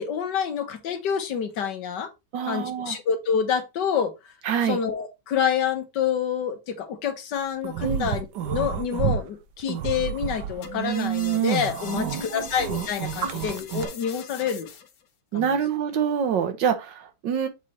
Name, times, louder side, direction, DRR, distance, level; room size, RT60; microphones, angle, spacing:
voice 1, 0.0-2.1 2.4-4.3 4.6-14.7 15.3-15.5, left 7 dB, 75° left, 1.7 m, -27 dB
voice 2, 2.3-3.0 4.4-4.8 7.8-8.1 11.9-12.5 13.2-13.3 15.3-17.5, right 7 dB, 90° right, 1.7 m, -26 dB
sound 1, 7.6-9.2 9.6-13.9, right 10 dB, 70° right, 1.3 m, -29 dB
sound 2, 10.6-15.0, left 7 dB, 60° left, 1.3 m, -42 dB
7.3 x 3.3 x 4.1 m
omnidirectional pair, 1.9 m